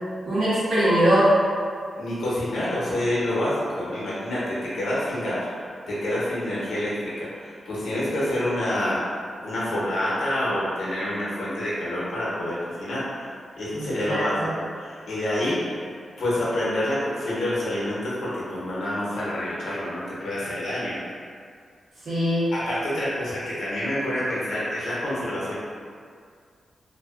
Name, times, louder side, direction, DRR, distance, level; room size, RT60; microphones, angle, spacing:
voice 1, 0.2-1.3 13.8-14.5 22.0-22.5, equal, 75° right, -11 dB, 1.1 m, -21 dB
voice 2, 2.0-9.0 9.4-13.3 13.6-14.3 14.7-21.0 22.5-25.5, left 1 dB, 80° left, -8 dB, 0.8 m, -27 dB
2.5 x 2.3 x 2.4 m, 2.2 s
cardioid pair, 85°, 0 cm